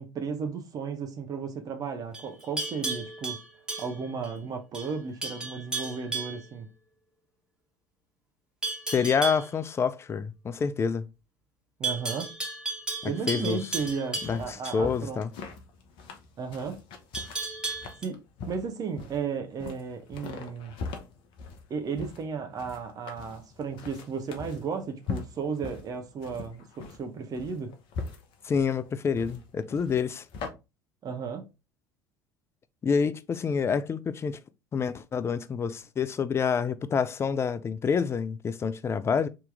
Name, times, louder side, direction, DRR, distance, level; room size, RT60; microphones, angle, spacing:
voice 1, 0.0-3.4 3.8-6.7 11.8-12.3 13.0-15.2 16.4-16.8 18.0-20.8 21.7-27.8 31.0-31.5, right 5 dB, 35° right, 0.8 m, -34 dB
Livestock farm animals working animals, 2.1-4.4 4.7-5.0 5.2-6.5 8.6-9.5 11.8-14.8 17.1-18.0, right 3 dB, 5° right, 1.5 m, -34 dB
voice 2, 8.9-11.0 13.3-13.6 14.2-15.3 28.4-30.2 32.8-34.4 34.7-39.3, left 6 dB, 25° left, 0.4 m, -27 dB
sound 1, 13.8-30.5, left 4 dB, 50° left, 0.8 m, -41 dB
3.7 x 2.9 x 3.4 m
figure-of-eight pair, 70°, 11 cm